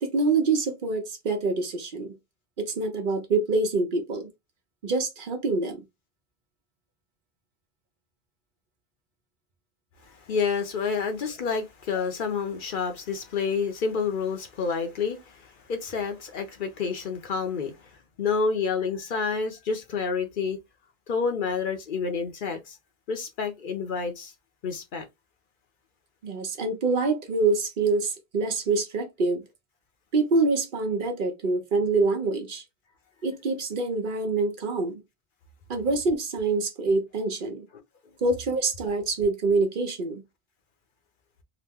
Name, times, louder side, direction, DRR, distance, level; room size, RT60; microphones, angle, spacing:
voice 1, 0.0-2.2 2.6-4.3 4.8-5.8 10.9-11.0 26.2-29.4 30.1-32.6 33.2-35.0 35.7-37.6 38.2-40.2, right 3 dB, 60° right, 0.8 m, -26 dB
voice 2, 10.3-15.4 15.7-17.7 18.2-20.6 21.1-22.7 23.1-24.3 24.6-25.0, left 5 dB, 60° left, 0.8 m, -28 dB
2.9 x 2.1 x 3.4 m
omnidirectional pair, 1.0 m